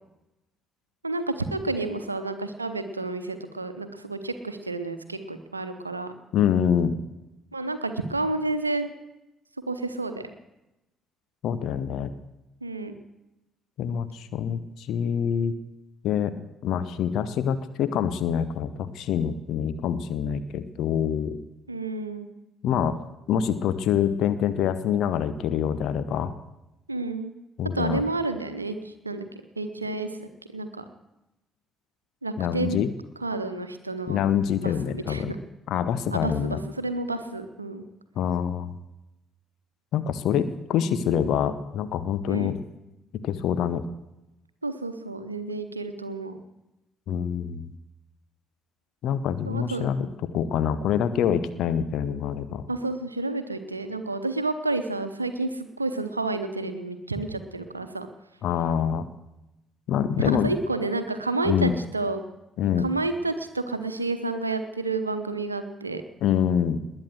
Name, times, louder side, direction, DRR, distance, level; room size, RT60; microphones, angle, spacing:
voice 1, 1.0-6.1 7.5-8.9 9.7-10.3 12.6-12.9 21.7-22.3 26.9-27.3 27.7-29.2 29.6-30.8 32.2-32.8 33.2-34.2 34.6-35.4 36.1-37.8 42.3-42.5 44.6-46.4 49.5-49.9 52.7-58.1 60.2-62.2 62.8-66.0, right 2 dB, 85° right, 10 dB, 0.9 m, -30 dB
voice 2, 6.3-7.0 11.4-12.1 13.8-15.5 16.0-16.3 16.6-21.4 22.6-23.0 23.3-26.3 27.6-28.0 32.4-32.9 34.1-35.3 35.7-36.6 38.2-38.7 39.9-42.6 43.2-43.8 47.1-47.7 49.0-50.1 50.3-52.6 58.4-59.1 59.9-60.5 61.4-61.7 62.6-62.9 66.2-66.8, left 8 dB, 55° left, 12 dB, 0.9 m, -25 dB
20.5 x 8.8 x 7.7 m, 0.93 s
figure-of-eight pair, 45°, 0 cm